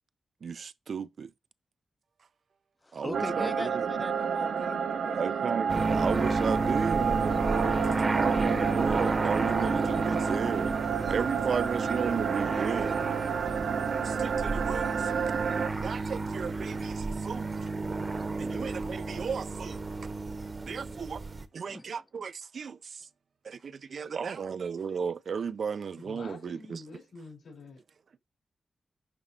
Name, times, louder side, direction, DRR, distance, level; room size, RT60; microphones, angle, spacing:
voice 1, 0.4-1.3 2.9-3.9 5.1-10.7 11.0-13.0 13.6-15.1 15.7-17.5 18.4-19.8 20.7-21.2 21.5-23.1 23.4-26.8, right 6 dB, 60° right, 0.3 m, -34 dB
voice 2, 2.9-5.2 7.6-8.2 21.6-21.8, left 2 dB, 15° left, 0.5 m, -40 dB
sound 1, 3.1-15.7, right 6 dB, 80° right, 0.8 m, -30 dB
sound 2, 5.7-21.5, right 3 dB, 30° right, 0.8 m, -31 dB
voice 3, 25.9-27.8, left 3 dB, 70° left, 4.6 m, -47 dB
11.0 x 4.2 x 2.7 m
wide cardioid pair, 140°, 0 cm